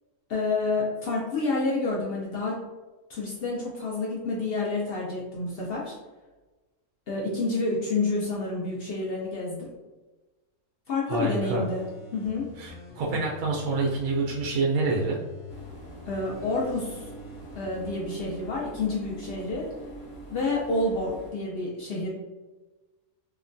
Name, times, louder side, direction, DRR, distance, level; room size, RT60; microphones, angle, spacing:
voice 1, 0.3-2.6 3.1-5.9 7.1-9.7 10.9-11.8 12.1-12.5 16.1-17.0 17.5-19.7 20.3-22.1, left 3 dB, 75° left, -4 dB, 0.5 m, -29 dB
voice 2, 11.1-11.6 12.6-15.2, right 3 dB, 85° right, -2 dB, 1.1 m, -27 dB
sound 1, 11.4-14.4 14.8-17.8 18.2-18.3, left 4 dB, 15° left, 0.6 m, -46 dB
sound 2, 15.5-21.3, right 1 dB, 55° left, 0.8 m, -44 dB
2.9 x 2.1 x 2.5 m, 1.2 s
omnidirectional pair, 1.6 m